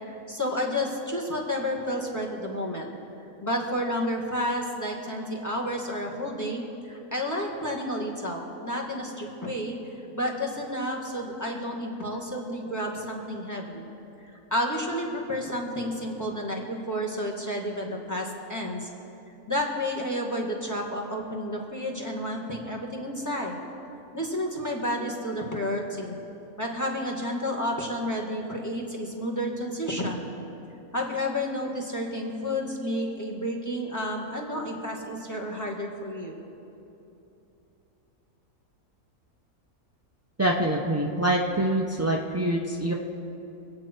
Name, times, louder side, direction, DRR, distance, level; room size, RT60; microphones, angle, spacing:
voice 1, 0.1-2.9 3.4-9.8 10.1-13.8 14.5-18.9 19.5-23.6 24.1-26.2 26.6-30.3 30.9-36.4, equal, 10° left, -1 dB, 1.9 m, -31 dB
voice 2, 40.4-42.9, right 1 dB, 20° right, -1 dB, 0.4 m, -25 dB
25.0 x 8.7 x 4.5 m, 2.9 s
omnidirectional pair, 1.5 m